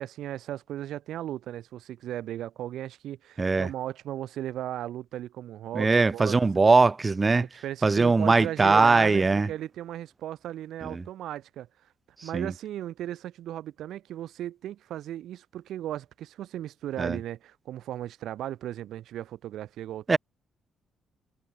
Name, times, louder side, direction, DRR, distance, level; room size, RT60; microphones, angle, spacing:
voice 1, 0.0-6.4 7.4-11.7 12.2-20.2, right 12 dB, 80° right, 2.0 m, -36 dB
voice 2, 3.4-3.7 5.7-7.5 7.8-9.5 10.8-11.0 12.2-12.5 17.0-17.2 20.1-20.2, right 3 dB, 25° right, 1.3 m, -21 dB
cardioid pair, 90°, 0 cm